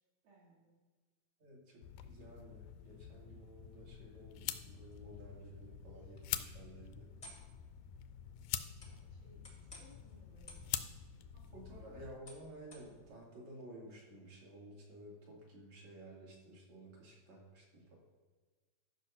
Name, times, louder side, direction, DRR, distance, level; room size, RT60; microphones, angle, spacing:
voice 1, 0.2-0.7 8.8-11.1, right 1 dB, 85° right, -6 dB, 4.5 m, -65 dB
voice 2, 1.4-7.1 11.3-18.0, right 1 dB, 55° right, -3 dB, 3.4 m, -54 dB
sound 1, 1.8-12.2, left 11 dB, 80° left, 2.0 m, -46 dB
sound 2, 4.6-13.1, left 2 dB, 30° left, 0.7 m, -60 dB
13.0 x 5.1 x 5.7 m, 1.4 s
omnidirectional pair, 4.0 m